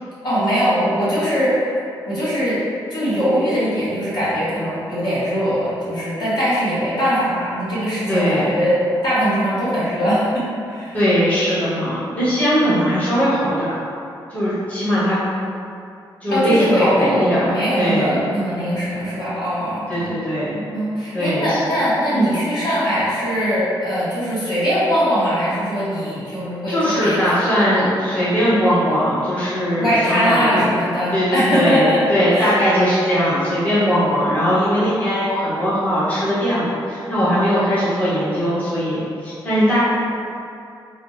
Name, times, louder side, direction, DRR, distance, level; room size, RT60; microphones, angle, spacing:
voice 1, 0.2-1.5 2.0-2.6 2.9-8.8 9.0-11.0 16.3-20.1 20.7-27.3 28.1-28.2 29.8-32.0 32.3-32.5, equal, 60° left, -11 dB, 1.5 m, -21 dB
voice 2, 8.1-8.6 10.9-13.9 14.3-15.2 16.2-17.5 17.8-18.2 19.9-20.6 21.1-21.6 22.1-22.3 26.7-30.7 31.1-39.8, equal, 15° left, -11 dB, 0.9 m, -19 dB
3.9 x 2.3 x 3.2 m, 2.6 s
wide cardioid pair, 130°, 8 cm